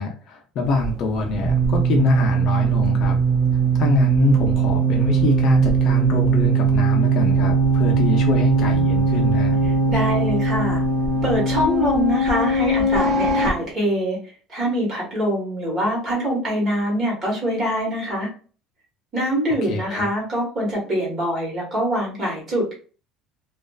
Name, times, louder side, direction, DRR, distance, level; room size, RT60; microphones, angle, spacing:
voice 1, 0.0-3.2 3.8-9.6 19.6-20.1, left 3 dB, 40° left, 2 dB, 0.5 m, -24 dB
sound 1, 0.7-13.5, right 4 dB, 45° right, 0.6 m, -20 dB
voice 2, 9.9-10.8 11.2-14.2 14.5-18.3 19.1-22.7, equal, 30° right, -3 dB, 1.2 m, -24 dB
2.4 x 2.3 x 2.2 m, 0.39 s
cardioid pair, 175°, 0 cm